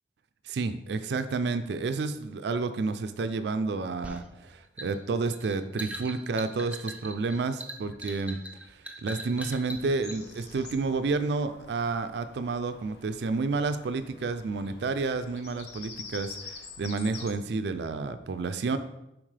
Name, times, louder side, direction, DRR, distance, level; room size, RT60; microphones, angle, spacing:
voice 1, 0.5-8.4 9.0-18.8, right 3 dB, 70° right, 10 dB, 0.4 m, -30 dB
sound 1, 4.0-10.2, right 1 dB, 10° right, 0.4 m, -41 dB
Bird vocalization bird call bird song, 10.0-17.3, left 4 dB, 65° left, 0.8 m, -47 dB
7.2 x 4.8 x 3.3 m, 0.88 s
head